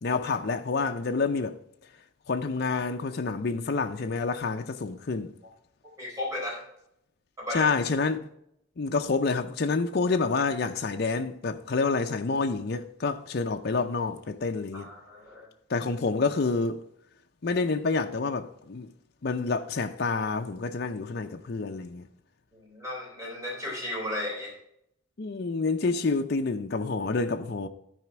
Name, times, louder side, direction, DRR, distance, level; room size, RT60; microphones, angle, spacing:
voice 1, 0.0-1.6 2.3-5.3 7.5-8.3 8.8-14.9 15.7-16.8 17.4-18.9 19.2-22.1 25.2-27.7, left 4 dB, 50° left, 0.5 m, -28 dB
voice 2, 6.0-6.6 7.4-7.7 14.7-15.5 22.5-24.5, left 1 dB, 15° right, 3.8 m, -34 dB
12.5 x 5.0 x 4.6 m
head